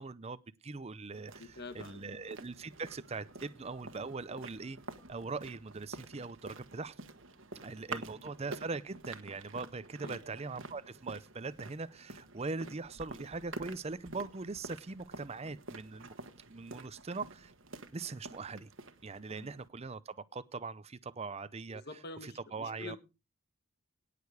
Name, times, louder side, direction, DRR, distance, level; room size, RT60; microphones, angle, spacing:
voice 1, 0.0-4.8 5.1-6.9 7.6-16.1 16.5-17.5 17.9-18.7 19.0-21.8 22.2-23.0, right 3 dB, 30° right, 0.6 m, -41 dB
sound 1, 1.1-19.7, right 3 dB, 60° right, 1.3 m, -49 dB
voice 2, 1.4-2.2 7.6-8.3 10.0-10.2 12.6-12.8 19.3-19.6 21.7-23.0, left 3 dB, 50° left, 1.4 m, -48 dB
18.0 x 6.8 x 4.8 m
head